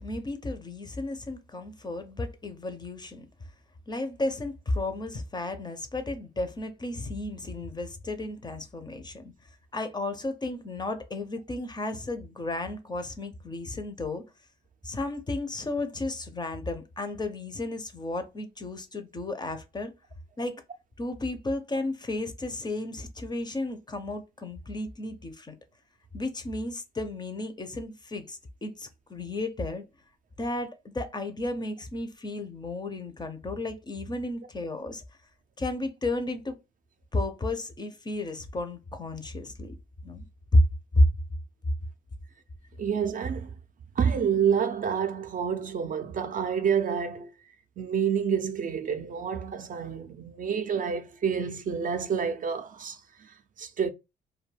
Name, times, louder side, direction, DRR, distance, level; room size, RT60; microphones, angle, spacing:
voice 1, 0.0-3.3 3.9-9.3 9.7-14.2 14.8-19.9 20.4-20.6 21.0-25.6 26.1-29.8 30.4-35.0 35.6-36.6 37.1-39.7 40.0-40.2 40.5-40.6 40.9-41.1, left 1 dB, 20° left, 0.5 m, -32 dB
voice 2, 42.8-43.5 44.0-47.3 47.8-53.9, right 7 dB, 45° right, 0.4 m, -28 dB
2.2 x 2.1 x 3.2 m
cardioid pair, 90°, 20 cm